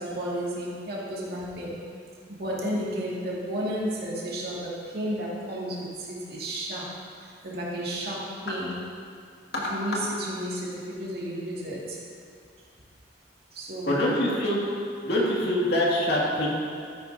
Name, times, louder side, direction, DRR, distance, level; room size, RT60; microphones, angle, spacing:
voice 1, 0.0-1.8 2.3-6.9 7.2-8.7 9.7-12.0 13.5-14.0, equal, 60° right, -5 dB, 2.3 m, -32 dB
voice 2, 13.9-14.6 15.0-16.5, left 1 dB, 65° left, -5 dB, 2.4 m, -24 dB
12.5 x 9.8 x 2.8 m, 2.3 s
head